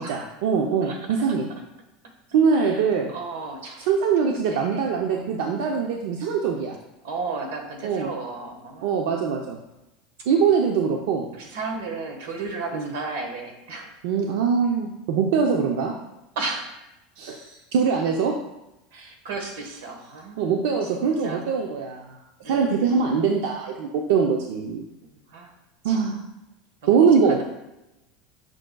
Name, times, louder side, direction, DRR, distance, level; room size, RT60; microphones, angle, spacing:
voice 1, 0.0-1.5 2.3-3.1 3.9-6.8 7.8-8.1 8.8-9.6 10.3-11.3 12.7-12.9 14.0-15.9 17.2-18.3 20.4-22.2 22.5-24.8 25.8-26.2 26.9-27.4, right 6 dB, 65° right, 2 dB, 0.6 m, -22 dB
voice 2, 0.8-1.2 2.5-2.8 3.1-3.9 4.4-4.8 5.1-5.6 7.0-9.0 11.3-13.9 16.3-16.7 18.9-21.4 22.4-22.9 25.0-25.5 25.8-26.0 26.8-27.1, right 3 dB, 90° right, 4 dB, 1.3 m, -34 dB
7.7 x 6.0 x 2.3 m, 0.94 s
supercardioid pair, 175°, 0 cm